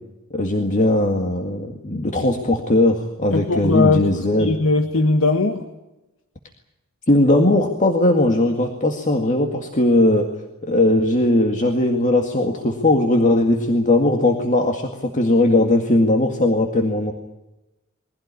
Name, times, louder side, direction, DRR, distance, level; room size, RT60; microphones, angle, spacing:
voice 1, 0.3-4.5 7.1-10.3 10.6-17.1, left 1 dB, 35° left, 3 dB, 2.0 m, -18 dB
voice 2, 3.3-4.0 4.4-5.6, left 3 dB, 65° left, 6 dB, 1.5 m, -19 dB
23.0 x 16.5 x 9.9 m, 0.99 s
head